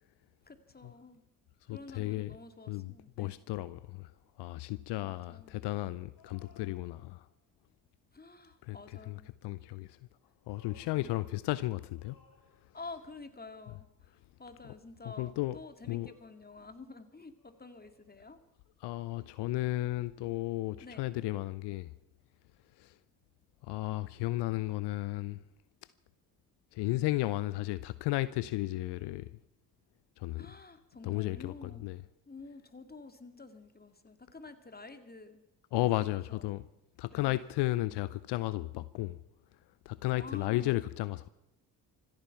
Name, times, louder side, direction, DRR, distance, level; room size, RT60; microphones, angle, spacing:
voice 1, 0.4-1.2 1.7-3.4 5.0-5.6 8.1-9.4 11.0-11.3 12.7-18.4 20.2-20.4 20.8-21.2 30.4-31.9 32.3-35.4 35.9-36.6 37.1-37.4 40.1-40.8, left 3 dB, 20° left, 2.1 m, -50 dB
voice 2, 1.7-2.3 2.7-2.9 3.2-4.1 4.4-7.3 8.7-10.0 10.5-12.2 15.2-15.6 15.9-16.1 18.8-21.9 22.8-22.9 23.6-25.4 26.7-29.3 30.2-30.5 31.0-32.0 35.7-36.6 37.0-39.2 39.9-41.3, left 17 dB, 60° left, 0.6 m, -34 dB
sound 1, 6.1-7.4 10.0-11.5 11.9-13.0 15.2-15.5 16.0-16.9 17.4-18.3, left 3 dB, 45° left, 3.8 m, -64 dB
26.0 x 9.0 x 5.8 m
hypercardioid pair, 45°, 47 cm